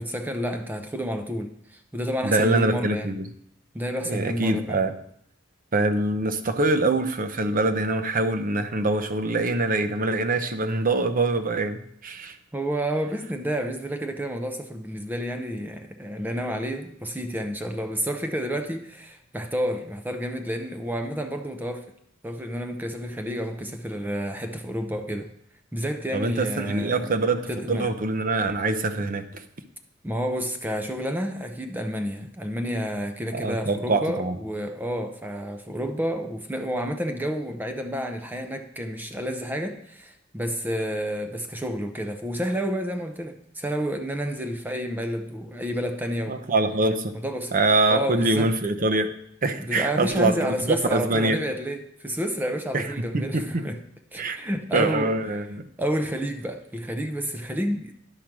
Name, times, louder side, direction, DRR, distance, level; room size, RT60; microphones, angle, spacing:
voice 1, 0.0-3.1 3.7-4.8 12.5-21.9 22.2-25.3 25.7-27.1 27.5-27.9 30.0-46.4 47.2-47.6 47.9-48.5 49.6-53.8 54.1-55.1 55.8-57.9, equal, 10° right, 6 dB, 0.6 m, -30 dB
voice 2, 2.2-3.3 4.1-4.9 5.7-12.4 26.1-29.4 33.3-34.4 46.3-47.2 47.5-49.1 49.4-51.4 52.7-53.7 54.2-54.4 54.7-55.7, right 2 dB, 45° right, 8 dB, 0.7 m, -24 dB
10.5 x 4.9 x 6.0 m, 0.70 s
head